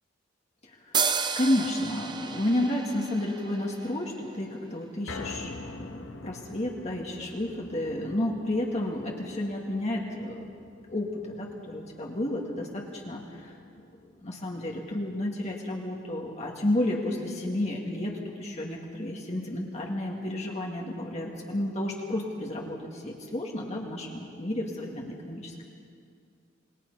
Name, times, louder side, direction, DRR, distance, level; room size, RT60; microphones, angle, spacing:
voice 1, 0.6-1.0 1.4-10.5 10.9-13.5 14.2-25.6, left 1 dB, 35° left, -1 dB, 2.0 m, -31 dB
sound 1, 0.9-4.5, right 6 dB, 20° right, 0.8 m, -32 dB
sound 2, 5.1-17.3 17.7-17.8 18.3-18.4, left 2 dB, 70° left, 1.3 m, -47 dB
27.0 x 21.0 x 5.5 m, 2.3 s
head